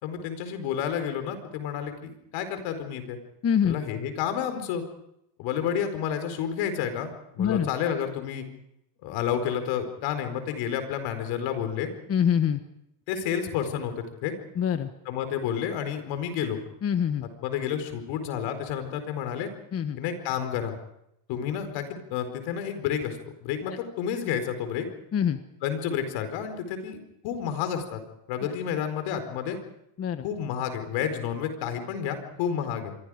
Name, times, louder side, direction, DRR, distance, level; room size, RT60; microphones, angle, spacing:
voice 1, 0.0-3.2 3.6-4.8 5.4-8.4 9.0-11.9 13.1-14.3 15.0-16.6 17.4-19.5 20.0-20.7 21.3-24.9 25.6-27.0 27.2-28.0 28.3-29.6 30.2-32.9, left 8 dB, 70° left, 8 dB, 4.6 m, -30 dB
voice 2, 3.4-3.8 7.4-7.7 12.1-12.6 14.6-14.9 16.8-17.3 19.7-20.0 23.7-23.8 25.1-25.4 30.0-30.2, left 8 dB, 30° left, 9 dB, 1.3 m, -24 dB
28.0 x 23.5 x 5.1 m, 0.80 s
cardioid pair, 120°, 46 cm